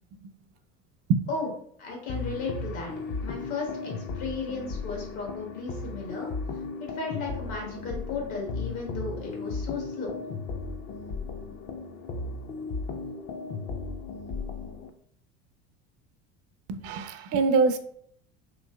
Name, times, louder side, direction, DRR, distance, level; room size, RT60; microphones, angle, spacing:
voice 1, 1.8-2.9 3.2-10.1, left 4 dB, 70° left, -1 dB, 1.3 m, -35 dB
sound 1, 2.1-14.9, left 4 dB, 35° left, 0.4 m, -35 dB
voice 2, 16.7-17.8, right 4 dB, 50° right, 9 dB, 0.4 m, -24 dB
3.0 x 2.8 x 2.2 m, 0.65 s
supercardioid pair, 90°, 31 cm